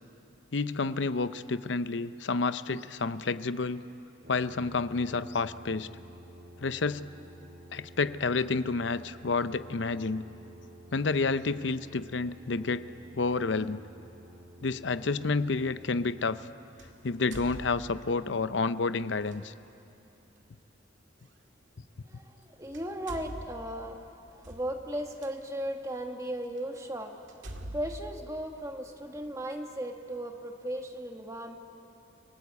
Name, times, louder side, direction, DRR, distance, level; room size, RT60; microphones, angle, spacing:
voice 1, 0.5-3.8 4.3-5.9 6.6-7.1 7.7-10.2 10.9-12.9 13.1-13.8 14.6-16.4 17.0-19.5, left 4 dB, 70° left, 13 dB, 0.7 m, -29 dB
Brass instrument, 4.2-16.5, right 1 dB, 55° right, 4.4 m, -51 dB
sound 1, 14.7-14.9 16.8-18.3 19.2-19.4 21.3-21.4 22.3-22.4 22.7-25.3 26.0-26.1 26.6-26.7 27.3-29.1, right 1 dB, 75° right, 2.0 m, -44 dB
voice 2, 22.1-24.1 24.3-27.2 27.7-31.6, right 1 dB, 15° right, 3 dB, 1.5 m, -36 dB
29.5 x 18.5 x 8.3 m, 2.9 s
head